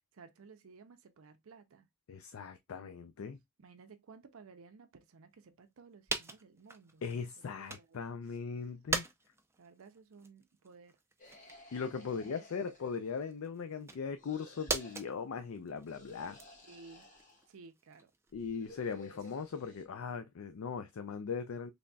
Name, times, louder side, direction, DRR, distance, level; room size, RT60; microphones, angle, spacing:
voice 1, 0.0-1.9 3.6-7.1 7.6-8.0 8.3-8.4 9.6-11.0 11.8-12.8 16.6-17.1 17.5-18.1 18.9-19.2, right 4 dB, 70° right, 0.5 m, -56 dB
voice 2, 2.1-3.4 7.0-9.1 11.7-16.4 18.3-21.7, left 5 dB, 70° left, 0.4 m, -39 dB
sound 1, 5.5-5.6 6.1-8.0 8.4-19.5, right 3 dB, 10° right, 0.5 m, -43 dB
sound 2, 11.2-13.5 14.2-15.0 15.9-17.5 18.3-19.9, left 2 dB, 35° left, 1.1 m, -56 dB
3.9 x 3.3 x 2.2 m
head